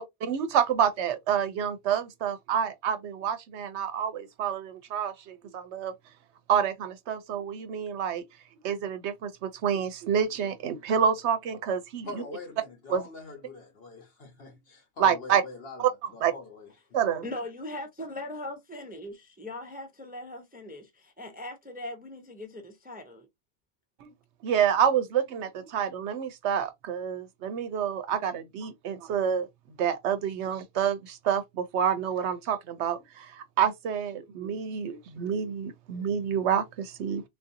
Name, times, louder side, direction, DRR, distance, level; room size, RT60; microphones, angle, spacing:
voice 1, 0.0-5.9 6.5-8.2 8.6-12.1 12.9-13.0 15.0-15.4 15.8-15.9 16.2-16.3 16.9-17.2 24.0-24.1 24.4-29.5 29.8-37.2, right 8 dB, 75° right, 0.8 m, -28 dB
voice 2, 12.0-16.7, left 2 dB, 55° left, 1.2 m, -43 dB
voice 3, 17.2-23.3, left 1 dB, 10° right, 0.5 m, -40 dB
3.7 x 2.5 x 2.6 m
omnidirectional pair, 1.2 m